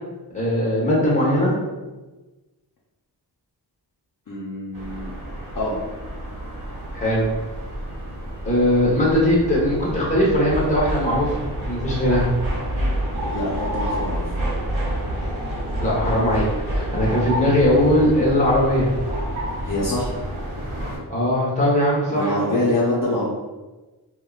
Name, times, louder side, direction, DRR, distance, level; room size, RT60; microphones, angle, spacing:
voice 1, 0.3-1.5 6.9-7.2 8.4-12.3 15.8-18.9 21.1-22.4, left 1 dB, 15° left, -6 dB, 0.9 m, -20 dB
voice 2, 4.3-5.1 5.5-5.8 13.2-14.3 19.6-20.1 22.1-23.2, left 1 dB, 50° left, -6 dB, 0.6 m, -25 dB
sound 1, 4.7-21.0, right 1 dB, 60° right, 1.1 m, -28 dB
3.5 x 2.2 x 2.3 m, 1.2 s
wide cardioid pair, 125°, 41 cm